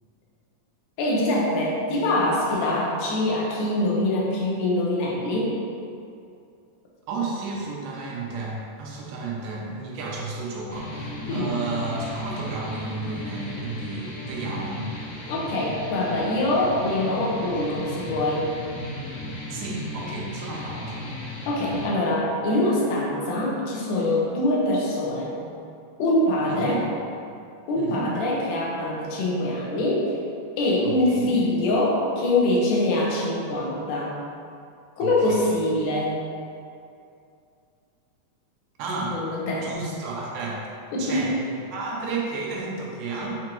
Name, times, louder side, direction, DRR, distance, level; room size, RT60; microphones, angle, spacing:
voice 1, 1.0-5.6 11.3-11.6 15.3-18.5 21.5-25.4 26.0-26.8 27.7-30.1 30.6-34.1 35.0-36.2 39.1-39.7 40.9-41.3, left 1 dB, 85° left, -4 dB, 2.3 m, -24 dB
voice 2, 7.1-14.9 19.5-21.1 26.5-26.8 27.8-28.1 30.8-31.3 35.0-35.5 38.8-39.2 39.5-40.7 41.0-43.4, right 3 dB, 80° right, -3 dB, 2.1 m, -32 dB
sound 1, 10.7-21.9, left 1 dB, 65° left, 1.7 m, -35 dB
6.0 x 2.6 x 2.9 m, 2.5 s
omnidirectional pair, 3.6 m